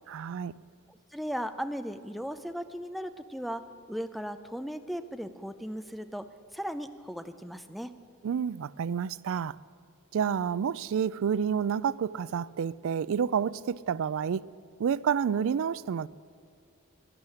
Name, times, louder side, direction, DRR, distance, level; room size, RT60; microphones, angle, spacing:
voice 1, 0.1-0.5 8.2-9.6 10.1-14.4 14.8-16.1, right 7 dB, 65° right, 0.3 m, -29 dB
voice 2, 0.9-8.0, equal, ahead, 0.5 m, -37 dB
12.0 x 10.5 x 9.8 m
head